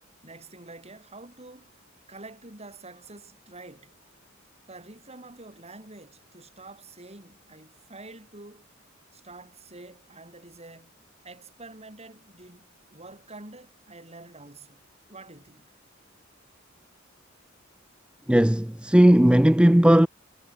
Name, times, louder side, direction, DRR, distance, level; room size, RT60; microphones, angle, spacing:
voice 1, 0.0-4.1 4.7-8.7 9.1-11.0 11.2-14.8 15.1-15.7, right 2 dB, 30° right, 5.9 m, -47 dB
voice 2, 18.3-20.1, equal, 5° right, 0.5 m, -17 dB
head